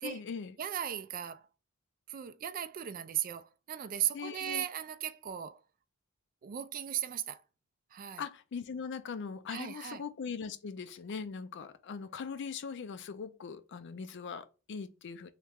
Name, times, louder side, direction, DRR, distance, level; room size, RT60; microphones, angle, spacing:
voice 1, 0.0-0.6 4.1-4.6 8.2-15.3, left 5 dB, 55° left, 0.4 m, -40 dB
voice 2, 0.6-1.5 2.1-5.6 6.4-7.4 7.9-8.2 9.5-10.0, right 10 dB, 40° right, 0.3 m, -37 dB
3.2 x 2.8 x 3.5 m
head